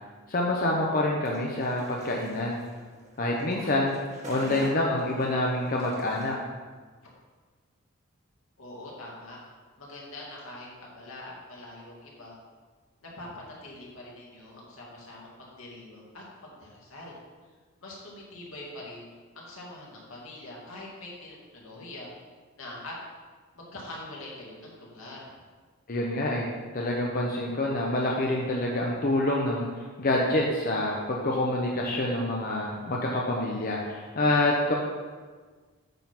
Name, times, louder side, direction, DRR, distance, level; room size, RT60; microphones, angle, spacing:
voice 1, 0.3-2.6 3.2-3.9 4.3-6.3 25.9-34.7, left 1 dB, 45° left, -2 dB, 0.8 m, -27 dB
sound 1, 1.2-6.3, right 1 dB, 35° right, 1.6 m, -45 dB
voice 2, 8.6-9.4 9.8-12.4 13.0-17.2 17.8-19.1 19.3-22.1 22.6-22.9 23.5-25.3, left 2 dB, 80° left, -4 dB, 2.3 m, -44 dB
9.1 x 3.8 x 5.9 m, 1.4 s
head